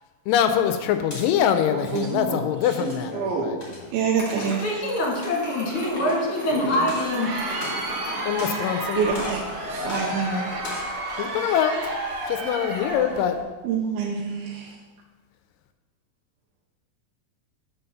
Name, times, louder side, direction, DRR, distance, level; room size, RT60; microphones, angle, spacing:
voice 1, 0.3-3.7 8.3-9.0 11.2-12.0 12.3-13.4, left 9 dB, 80° left, 8 dB, 2.1 m, -24 dB
sound 1, 1.1-1.3 1.8-2.1 2.8-3.1 3.6-3.8 4.4-4.5 5.1-5.6 6.1-6.2 6.8-7.1 7.5-8.1 8.4-8.7 9.1-9.5 9.9-10.1 10.5-10.9, left 1 dB, 25° left, 2.3 m, -37 dB
voice 2, 1.8-2.4 2.8-3.5 3.9-4.8 6.5-6.7 9.0-10.6 13.6-14.7, right 5 dB, 80° right, -1 dB, 2.5 m, -27 dB
sound 2, 4.2-13.4, equal, 40° right, 1.6 m, -40 dB
voice 3, 4.6-7.3, left 1 dB, 45° left, -4 dB, 2.4 m, -24 dB
Crowd, 6.8-13.3, right 1 dB, 55° right, 2.2 m, -31 dB
5.7 x 5.6 x 6.8 m, 1.3 s
omnidirectional pair, 4.2 m